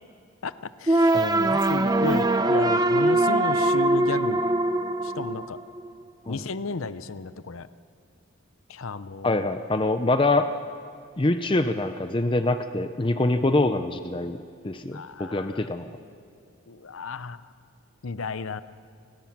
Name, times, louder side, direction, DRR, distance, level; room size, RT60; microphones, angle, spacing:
voice 1, 0.4-1.2 1.7-4.4 5.0-5.6 6.3-7.7 8.7-9.4 14.9-15.7 16.7-17.4 18.0-18.6, left 4 dB, 75° left, 14 dB, 0.7 m, -33 dB
sound 1, 0.9-5.9, right 2 dB, 20° right, 0.7 m, -22 dB
voice 2, 1.1-1.6 6.3-6.4 9.2-10.5 11.2-15.9, left 2 dB, 25° left, 9 dB, 0.6 m, -25 dB
29.5 x 18.0 x 6.1 m, 2.3 s
head